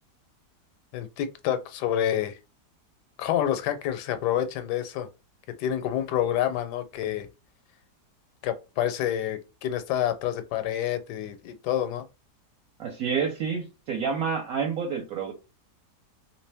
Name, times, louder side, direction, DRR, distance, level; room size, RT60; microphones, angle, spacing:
voice 1, 0.9-2.4 3.2-5.1 5.6-7.3 8.4-12.0, left 11 dB, 85° left, 1.2 m, -28 dB
voice 2, 12.8-15.3, right 6 dB, 65° right, 1.0 m, -29 dB
3.1 x 2.8 x 3.3 m
omnidirectional pair, 1.8 m